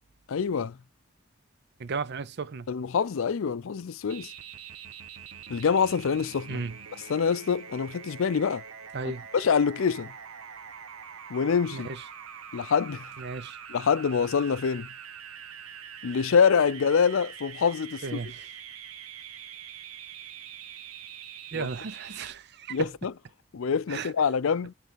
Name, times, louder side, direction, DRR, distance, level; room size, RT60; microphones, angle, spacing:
voice 1, 0.3-0.8 2.7-4.3 5.5-6.6 7.1-8.6 9.3-10.1 11.3-11.9 12.5-13.1 13.7-14.9 16.0-18.2 21.5-21.7 22.7-23.1 23.5-24.7, left 6 dB, 70° left, 0.4 m, -25 dB
voice 2, 1.8-2.7 6.5-6.8 8.9-9.3 11.7-12.0 13.2-13.6 18.0-18.5 21.5-22.9 23.9-24.1, right 4 dB, 50° right, 0.6 m, -35 dB
sound 1, 4.1-22.3, right 8 dB, 85° right, 0.9 m, -44 dB
8.0 x 3.3 x 4.6 m
head